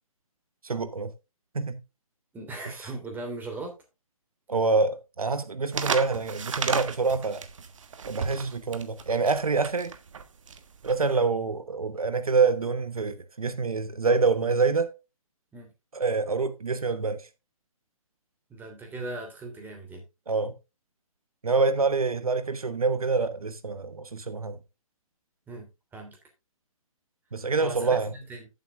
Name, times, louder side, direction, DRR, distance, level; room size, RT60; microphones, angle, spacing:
voice 1, 0.6-1.1 1.5-1.8 4.5-7.4 8.1-9.9 10.8-14.9 15.9-17.3 20.3-20.5 21.4-24.6 27.3-28.1, right 4 dB, 85° right, 1.1 m, -26 dB
voice 2, 2.3-3.7 15.5-15.7 18.5-20.0 25.5-26.2 27.6-28.5, right 2 dB, 10° right, 3.1 m, -38 dB
sound 1, 5.7-11.2, right 6 dB, 60° right, 1.4 m, -33 dB
14.0 x 7.9 x 2.5 m
figure-of-eight pair, 135°, 18 cm